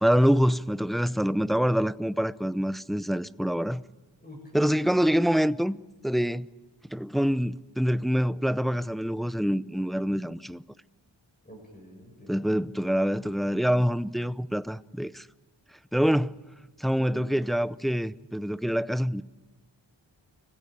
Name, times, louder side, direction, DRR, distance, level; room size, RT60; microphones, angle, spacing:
voice 1, 0.0-3.8 4.5-5.8 6.0-6.5 6.9-10.6 12.3-15.3 15.9-16.4 16.8-19.2, equal, ahead, 0.6 m, -25 dB
voice 2, 4.2-4.8 11.4-12.5 17.0-17.2, left 1 dB, 20° left, 7.6 m, -46 dB
25.0 x 16.5 x 8.7 m
wide cardioid pair, 60°, 46 cm